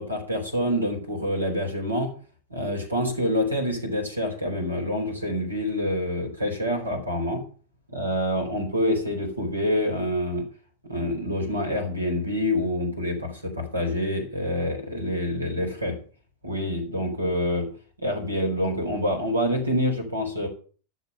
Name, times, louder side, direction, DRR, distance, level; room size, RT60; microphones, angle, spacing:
voice 1, 0.0-2.1 2.5-7.4 7.9-10.4 10.9-16.0 16.4-17.7 18.0-20.5, left 1 dB, 85° right, 2 dB, 4.4 m, -26 dB
12.0 x 6.9 x 7.9 m, 0.40 s
figure-of-eight pair, 90°, 0 cm